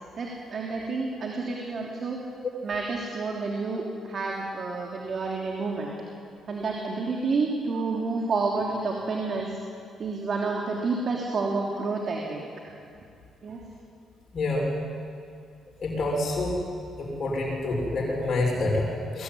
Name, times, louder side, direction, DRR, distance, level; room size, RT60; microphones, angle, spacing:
voice 1, 0.1-2.2 2.6-5.9 6.5-9.6 10.0-12.5 13.4-13.7, right 3 dB, 50° right, -1 dB, 3.2 m, -29 dB
voice 2, 14.3-14.7 15.8-16.6 17.0-19.2, left 2 dB, 55° left, -1 dB, 6.0 m, -27 dB
22.0 x 16.5 x 9.9 m, 2.4 s
cardioid pair, 90°, 0 cm